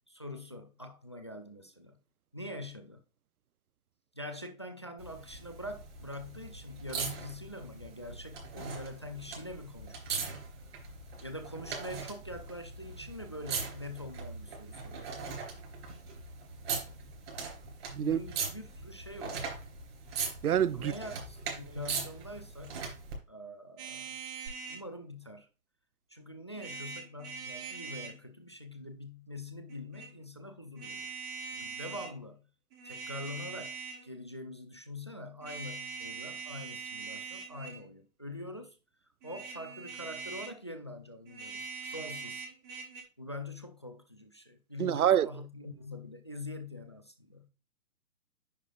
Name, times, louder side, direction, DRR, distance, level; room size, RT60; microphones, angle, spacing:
voice 1, 0.1-2.0 2.3-3.0 4.1-10.2 11.2-15.2 18.0-19.5 20.7-23.0 23.3-24.2 24.7-25.5 26.1-31.1 31.5-32.5 32.8-33.8 34.0-38.8 39.2-42.4 43.2-47.5, left 1 dB, 20° left, 0.4 m, -44 dB
sound 1, 5.0-23.2 24.5-24.6, right 5 dB, 45° right, 3.8 m, -40 dB
voice 2, 17.9-18.2 20.4-20.9 44.8-45.3, right 10 dB, 80° right, 0.5 m, -26 dB
sound 2, 23.8-24.8 26.5-28.2 29.7-30.1 30.8-32.1 32.7-34.1 35.4-37.9 39.2-40.6 41.3-43.0, right 5 dB, 15° right, 0.7 m, -42 dB
9.9 x 5.6 x 2.5 m
figure-of-eight pair, 135°, 44 cm